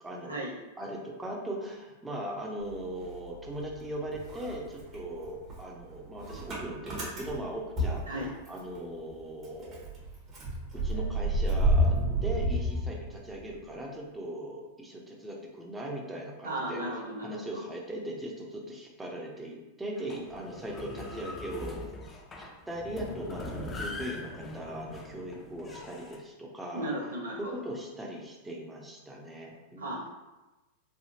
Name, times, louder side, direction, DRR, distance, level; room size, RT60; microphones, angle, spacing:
voice 1, 0.0-0.3 0.8-9.9 10.7-16.8 17.2-21.8 22.4-26.9 27.4-30.1, right 1 dB, 10° right, -2 dB, 0.7 m, -39 dB
Motor vehicle (road) / Engine starting, 2.6-3.8 4.1-8.8 9.1-9.2 9.4-13.5, right 1 dB, 35° right, 1.1 m, -30 dB
voice 2, 16.4-17.4 26.7-27.5 29.8-30.1, right 1 dB, 90° right, -1 dB, 0.6 m, -35 dB
sound 1, 20.0-26.2, left 1 dB, 25° left, 0.5 m, -41 dB
3.4 x 2.3 x 2.7 m, 1.1 s
hypercardioid pair, 100°, 0 cm